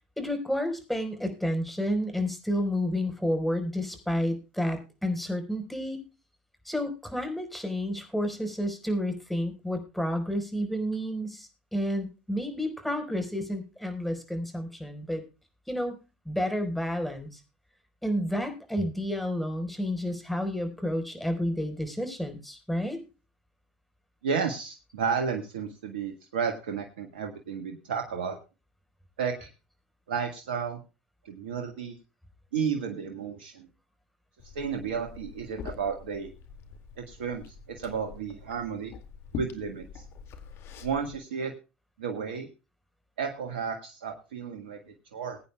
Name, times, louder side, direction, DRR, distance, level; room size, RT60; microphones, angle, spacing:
voice 1, 0.2-6.0 6.6-15.2 15.7-16.0 16.2-17.4 18.0-23.0, equal, ahead, 6 dB, 4.5 m, -30 dB
voice 2, 24.2-28.4 29.2-29.5 30.1-30.8 31.2-31.9 32.5-33.6 34.5-36.3 37.0-38.9 39.3-39.9 40.8-41.5 42.0-42.5 43.2-45.4, right 6 dB, 85° right, 5 dB, 1.6 m, -32 dB
Liquid, 34.4-41.2, left 6 dB, 55° left, 2.2 m, -44 dB
21.5 x 9.1 x 2.3 m, 0.31 s
hypercardioid pair, 80°, 5 cm